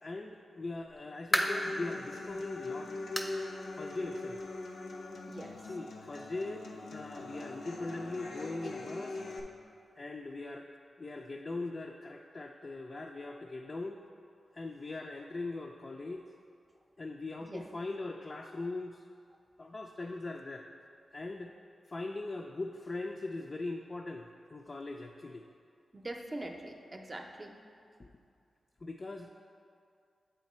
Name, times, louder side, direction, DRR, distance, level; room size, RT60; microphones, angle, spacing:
voice 1, 0.0-3.0 3.8-4.4 5.7-9.2 10.0-10.7 11.0-14.0 14.5-16.2 17.0-19.0 19.6-20.7 21.1-21.5 21.9-25.5 28.0-28.1 28.8-29.3, left 2 dB, 45° left, 1 dB, 0.4 m, -40 dB
sound 1, 0.7-1.8 2.3-2.4 3.1-3.4 3.7-3.8 4.3-4.4 5.5-5.6, equal, 10° left, 0.6 m, -32 dB
Human voice / Acoustic guitar, 1.4-9.4, left 2 dB, 90° left, 0.6 m, -42 dB
voice 2, 25.9-27.5, right 1 dB, 30° right, 3 dB, 0.6 m, -43 dB
8.0 x 3.7 x 4.2 m, 2.4 s
cardioid pair, 65°, 0 cm